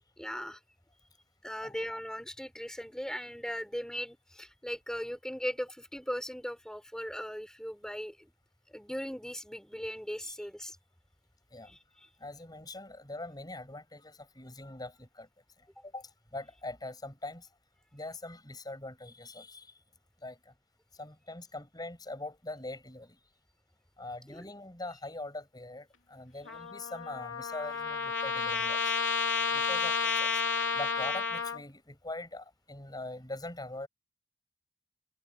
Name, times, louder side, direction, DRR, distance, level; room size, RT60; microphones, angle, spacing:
voice 1, 0.2-0.6 1.4-8.3 8.7-10.8 11.6-12.1 15.8-15.9 24.3-24.5, equal, 5° left, 6.2 m, -39 dB
voice 2, 12.2-15.3 15.6-17.5 17.9-19.8 20.2-20.5 20.9-23.2 24.0-28.9 29.5-30.3 30.7-33.9, left 2 dB, 20° left, 7.6 m, -43 dB
Trumpet, 26.5-31.6, left 6 dB, 60° left, 4.1 m, -31 dB
open air
head